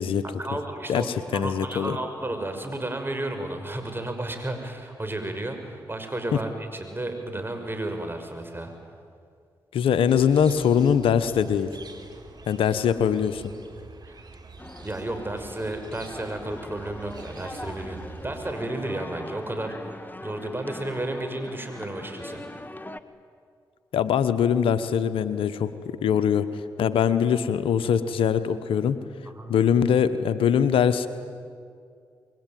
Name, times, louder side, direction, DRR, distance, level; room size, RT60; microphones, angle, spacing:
voice 1, 0.4-8.7 14.1-14.2 14.8-22.6 29.3-29.5, right 1 dB, 25° right, 5 dB, 6.1 m, -33 dB
voice 2, 0.9-2.0 6.3-6.4 9.7-11.7 12.5-13.4 23.9-26.5 26.8-29.0 29.5-31.1, left 8 dB, 80° left, 12 dB, 1.1 m, -22 dB
sound 1, 10.1-18.5, right 4 dB, 50° right, 4.0 m, -46 dB
sound 2, 14.6-23.0, left 2 dB, 20° left, 1.5 m, -41 dB
26.5 x 22.5 x 9.3 m, 2.2 s
supercardioid pair, 40°, 9 cm